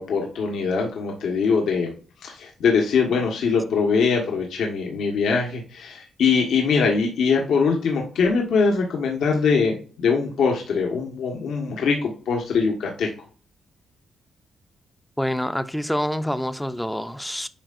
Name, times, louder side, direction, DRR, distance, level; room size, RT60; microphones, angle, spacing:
voice 1, 0.0-1.9 2.2-13.1, left 5 dB, 80° left, 1.3 m, -22 dB
voice 2, 15.2-17.5, equal, 5° left, 0.4 m, -26 dB
8.9 x 5.5 x 2.5 m
wide cardioid pair, 175°, 0 cm